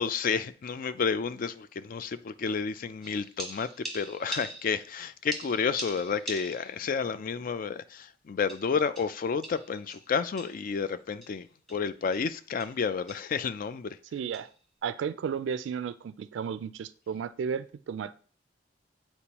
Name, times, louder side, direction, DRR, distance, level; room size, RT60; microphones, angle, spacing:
voice 1, 0.0-14.0, left 5 dB, 50° left, 0.4 m, -31 dB
sound 1, 3.0-5.0 5.3-6.9 7.2-7.3 8.5-10.7 11.2-11.4 11.7-11.8 12.1-12.3 12.6-12.8 13.1-13.3 14.3-14.5, right 1 dB, ahead, 1.4 m, -42 dB
voice 2, 14.1-14.5 14.8-18.2, right 7 dB, 80° right, 0.3 m, -33 dB
8.4 x 4.4 x 2.9 m
head